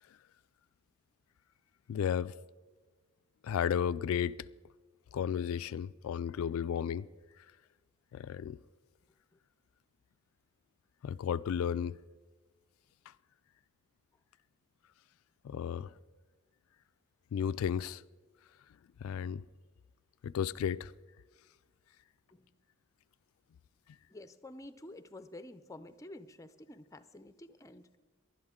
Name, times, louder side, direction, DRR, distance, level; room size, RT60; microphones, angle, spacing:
voice 1, 1.9-2.3 3.4-4.5 5.1-7.1 7.4-7.5 8.1-8.6 11.0-12.0 13.1-13.2 15.4-15.9 17.3-18.0 19.0-19.4 20.2-20.9, left 8 dB, 90° left, 0.3 m, -33 dB
voice 2, 24.1-28.0, left 1 dB, 15° left, 0.5 m, -50 dB
19.0 x 11.5 x 3.7 m
head